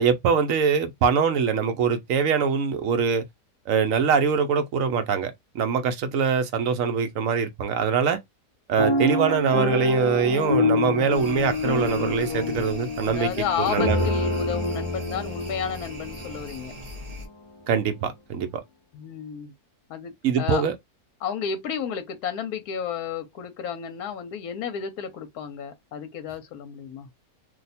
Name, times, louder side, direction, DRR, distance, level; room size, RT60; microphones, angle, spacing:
voice 1, 0.0-3.2 3.7-8.2 8.7-13.3 13.7-14.1 17.7-18.6 20.2-20.8, right 6 dB, 65° right, 0.9 m, -23 dB
sound 1, 8.8-16.9 17.5-17.6 17.8-18.1, left 3 dB, 40° left, 0.4 m, -27 dB
sound 2, 11.1-17.3, right 1 dB, 40° right, 0.6 m, -41 dB
voice 2, 12.3-12.6 13.1-16.7 18.9-19.5 19.9-20.6 21.2-27.1, left 8 dB, 70° left, 1.0 m, -32 dB
2.7 x 2.2 x 4.1 m
omnidirectional pair, 1.8 m